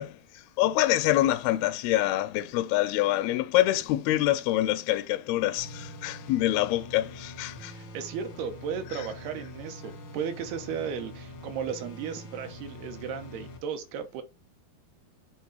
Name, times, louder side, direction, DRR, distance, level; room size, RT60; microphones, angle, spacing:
voice 1, 0.0-7.8 8.9-9.1, left 15 dB, 85° left, 2.4 m, -26 dB
sound 1, 5.6-13.6, left 1 dB, 65° left, 1.1 m, -44 dB
voice 2, 7.7-14.2, right 7 dB, 80° right, 2.9 m, -35 dB
8.2 x 3.7 x 4.5 m
omnidirectional pair, 4.6 m